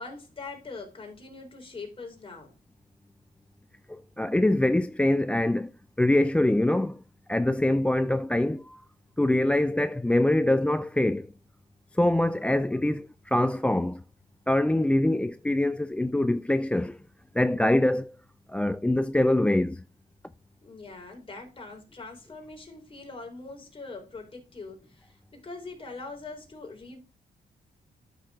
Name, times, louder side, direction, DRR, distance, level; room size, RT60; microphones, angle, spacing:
voice 1, 0.0-2.5 20.6-27.0, left 3 dB, 35° left, 3.8 m, -42 dB
voice 2, 3.9-5.7 6.0-7.0 7.3-8.8 9.2-11.3 11.9-14.0 14.5-17.0 17.3-18.2 18.5-19.8, left 1 dB, 5° left, 0.3 m, -24 dB
12.0 x 6.3 x 2.4 m
cardioid pair, 80°, 17 cm